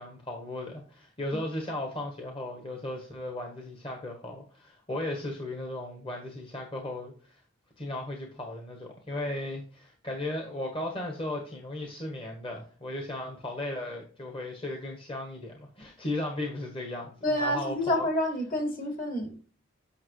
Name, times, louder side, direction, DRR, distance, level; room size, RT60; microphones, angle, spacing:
voice 1, 0.0-7.4 7.8-18.1, left 1 dB, 25° left, 2 dB, 1.3 m, -36 dB
voice 2, 17.2-19.4, left 1 dB, 45° left, 3 dB, 2.1 m, -28 dB
8.6 x 6.0 x 3.2 m, 0.40 s
head